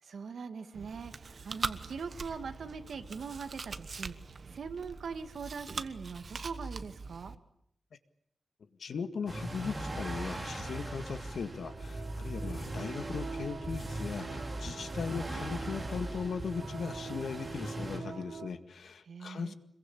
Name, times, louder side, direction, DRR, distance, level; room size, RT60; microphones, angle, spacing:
voice 1, 0.0-7.4 19.0-19.5, right 5 dB, 70° right, 7 dB, 2.2 m, -42 dB
Chewing mastication, 0.7-7.4, right 4 dB, 45° right, 1.3 m, -42 dB
voice 2, 8.8-19.5, left 5 dB, 75° left, 9 dB, 1.9 m, -38 dB
sound 1, 9.3-18.0, right 1 dB, 20° right, 5.0 m, -39 dB
sound 2, 11.6-18.5, right 5 dB, 90° right, 3.3 m, -45 dB
26.5 x 22.5 x 8.7 m, 0.75 s
wide cardioid pair, 175°, 0 cm